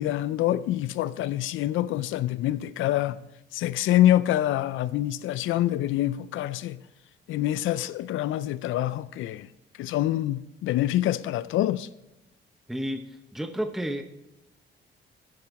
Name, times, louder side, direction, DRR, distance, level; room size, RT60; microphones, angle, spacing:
voice 1, 0.0-3.2 3.5-6.8 7.3-9.5 9.8-11.9, left 13 dB, 80° left, 0.5 m, -26 dB
voice 2, 12.7-14.0, equal, ahead, 0.8 m, -31 dB
10.5 x 7.8 x 4.1 m
cardioid pair, 90°, 20 cm